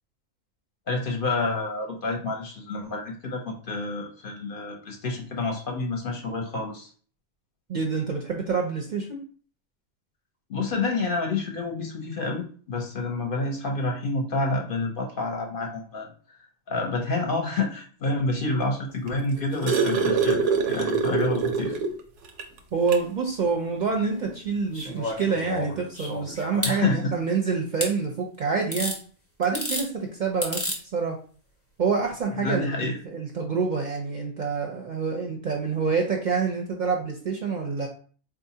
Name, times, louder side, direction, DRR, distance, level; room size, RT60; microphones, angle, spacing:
voice 1, 0.9-6.9 10.5-16.1 16.7-20.4 20.7-21.8 26.6-27.1 32.4-33.0, left 3 dB, 55° left, 2 dB, 0.7 m, -28 dB
voice 2, 7.7-9.2 22.7-29.0 29.4-30.7 30.9-31.2 31.8-37.9, right 5 dB, 55° right, 1 dB, 0.6 m, -27 dB
sound 1, 19.1-22.0 22.4-22.5 22.9-23.1 24.2-24.3, right 5 dB, 90° right, 0.9 m, -24 dB
sound 2, 24.7-26.8 27.8-27.9 28.7-29.0 29.4-29.9 30.4-30.8 32.0-32.1, left 1 dB, 15° left, 0.6 m, -31 dB
4.0 x 2.4 x 2.7 m, 0.42 s
omnidirectional pair, 1.2 m